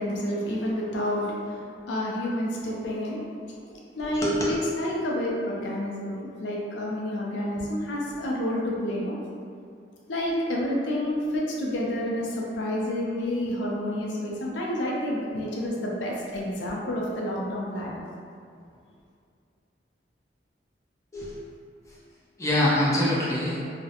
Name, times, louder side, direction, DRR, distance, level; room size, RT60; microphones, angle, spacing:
voice 1, 0.0-3.2 3.7-4.3 4.8-9.2 10.1-18.0, left 1 dB, 75° left, -3 dB, 0.4 m, -29 dB
voice 2, 4.0-4.6 21.1-21.3 22.4-23.6, left 1 dB, 15° left, -8 dB, 0.5 m, -25 dB
2.3 x 2.0 x 2.7 m, 2.3 s
head